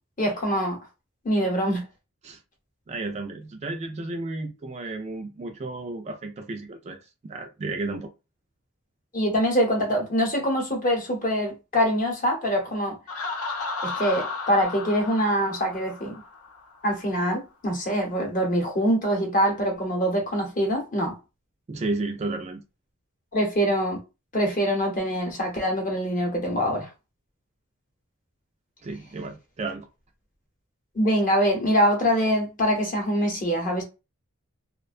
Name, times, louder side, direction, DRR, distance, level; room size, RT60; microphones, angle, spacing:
voice 1, 0.2-0.8 1.2-1.8 9.1-12.9 13.8-16.2 16.8-21.1 23.3-24.0 24.3-26.9 30.9-33.8, equal, 40° left, 0.8 m, -24 dB
voice 2, 2.9-7.0 7.2-8.1 21.7-22.6 28.8-29.9, right 2 dB, 30° right, 0.3 m, -32 dB
Laughter, 13.1-16.8, left 3 dB, 80° left, 0.5 m, -34 dB
2.4 x 2.1 x 2.4 m
head